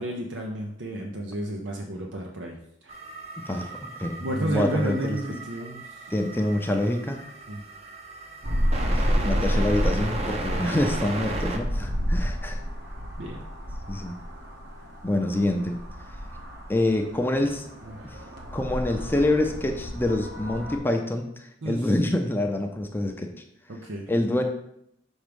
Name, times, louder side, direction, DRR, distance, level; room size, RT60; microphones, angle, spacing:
voice 1, 0.0-2.9 3.5-3.6 4.2-5.8 7.5-7.6 13.2-13.5 17.8-17.9 21.6-21.8 23.7-24.1, right 1 dB, 85° right, 0 dB, 0.8 m, -32 dB
sound 1, 2.9-11.6, right 2 dB, 35° right, 0.7 m, -36 dB
voice 2, 4.0-5.2 6.1-7.2 8.9-12.6 13.9-14.1 15.0-15.8 16.7-17.7 18.0-18.2 18.5-23.3 24.1-24.4, left 1 dB, 10° left, 3 dB, 0.5 m, -26 dB
sound 2, 8.4-20.8, equal, 60° right, 1.2 m, -30 dB
6.3 x 3.5 x 5.2 m, 0.74 s
head